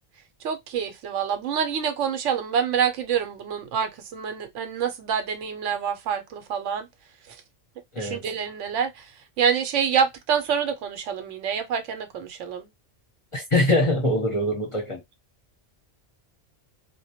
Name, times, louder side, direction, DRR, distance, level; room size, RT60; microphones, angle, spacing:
voice 1, 0.4-6.9 8.0-8.9 9.4-12.7, right 7 dB, 85° right, 0.9 m, -26 dB
voice 2, 7.9-8.3 13.3-15.0, left 1 dB, 35° left, 0.6 m, -23 dB
2.1 x 2.1 x 2.7 m
omnidirectional pair, 1.2 m